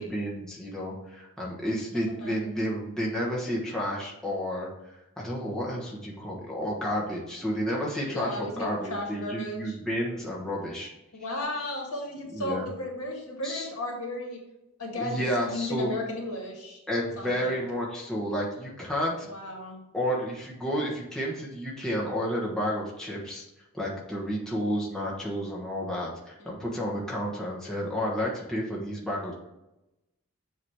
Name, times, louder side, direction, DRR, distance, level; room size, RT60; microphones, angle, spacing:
voice 1, 0.0-4.7 5.2-10.9 12.3-12.7 13.4-13.7 15.0-15.9 16.9-19.3 19.9-23.4 23.7-29.4, equal, 5° left, -5 dB, 1.1 m, -31 dB
voice 2, 8.1-9.8 11.1-14.4 14.8-16.8 17.2-17.6 19.3-19.8 26.4-26.5, left 1 dB, 85° left, 0 dB, 1.9 m, -35 dB
7.4 x 3.0 x 4.7 m, 0.94 s
head